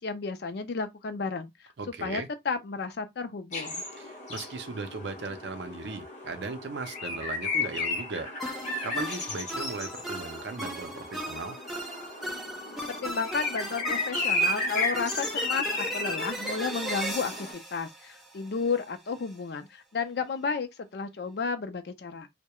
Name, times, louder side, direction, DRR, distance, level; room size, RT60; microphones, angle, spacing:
voice 1, 0.0-1.5 2.0-3.8 12.9-22.3, left 5 dB, 55° left, 0.4 m, -32 dB
voice 2, 1.8-2.3 4.0-8.3 8.8-11.6, right 3 dB, 60° right, 0.5 m, -37 dB
sound 1, 3.5-17.5, left 2 dB, 40° left, 0.9 m, -34 dB
sound 2, 8.4-18.8, right 1 dB, ahead, 0.5 m, -37 dB
2.3 x 2.1 x 2.8 m
head